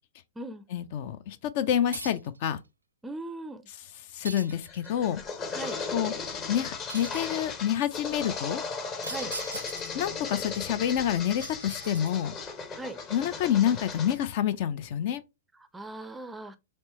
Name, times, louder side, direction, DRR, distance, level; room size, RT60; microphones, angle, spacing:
voice 1, 0.7-2.6 3.7-3.8 4.1-5.2 5.9-6.1 6.5-8.6 9.9-12.3 13.1-15.2, left 10 dB, 50° left, 0.5 m, -28 dB
sound 1, 1.9-2.4 4.2-5.0 6.9-7.4 9.0-10.1 11.4-12.4, right 4 dB, 85° right, 0.3 m, -41 dB
voice 2, 3.0-3.7 5.5-5.8 9.0-9.3 12.7-13.0 15.7-16.6, right 2 dB, 10° right, 0.4 m, -38 dB
sound 2, 4.5-14.2, left 4 dB, 30° left, 0.9 m, -36 dB
4.4 x 3.2 x 3.1 m
figure-of-eight pair, 110°, 0 cm